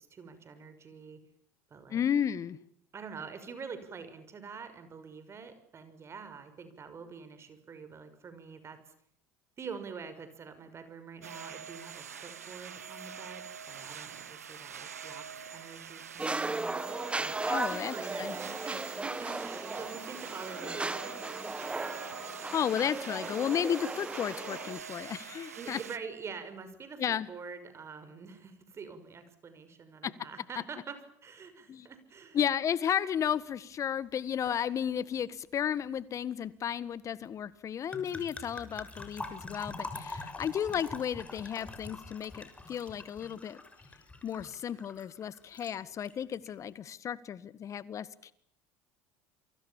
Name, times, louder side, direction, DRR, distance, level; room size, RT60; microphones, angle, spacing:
voice 1, 0.1-1.2 1.7-2.0 2.9-8.9 9.6-16.7 17.2-21.2 25.5-32.4, right 5 dB, 35° right, 10 dB, 6.1 m, -46 dB
voice 2, 1.9-2.6 17.5-18.3 22.5-25.8 27.0-27.3 30.0-30.1 31.7-31.9 32.3-43.6 44.2-48.3, left 9 dB, 40° left, 17 dB, 1.6 m, -33 dB
sound 1, 11.2-26.0, right 7 dB, 90° right, 1.3 m, -45 dB
sound 2, 16.2-24.8, right 3 dB, 15° right, 1.7 m, -36 dB
sound 3, 34.5-34.6 34.9-35.2 37.9-45.7 46.0-46.5, left 3 dB, 15° left, 6.4 m, -44 dB
28.5 x 24.0 x 7.3 m, 0.64 s
hypercardioid pair, 70°, 8 cm